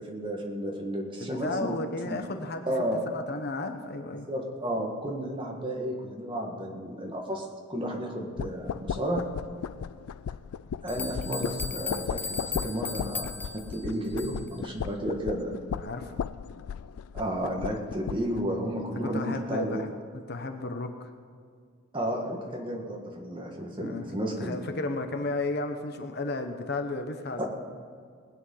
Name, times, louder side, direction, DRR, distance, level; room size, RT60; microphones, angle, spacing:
voice 1, 0.0-1.7 2.0-2.2 2.7-3.0 4.3-9.2 10.8-13.3 13.5-15.5 17.1-19.8 21.9-24.6 27.4-27.5, right 1 dB, 25° right, 0 dB, 1.8 m, -32 dB
voice 2, 1.2-2.7 3.1-4.3 15.8-16.2 19.0-19.9 20.3-21.1 23.8-24.1 24.4-27.5, left 2 dB, 50° left, 6 dB, 1.0 m, -33 dB
sound 1, 8.4-18.4, left 7 dB, 90° left, 0.4 m, -36 dB
sound 2, 10.4-10.5 10.9-14.6, left 4 dB, 10° left, 0.3 m, -37 dB
20.0 x 9.4 x 5.6 m, 2.2 s
head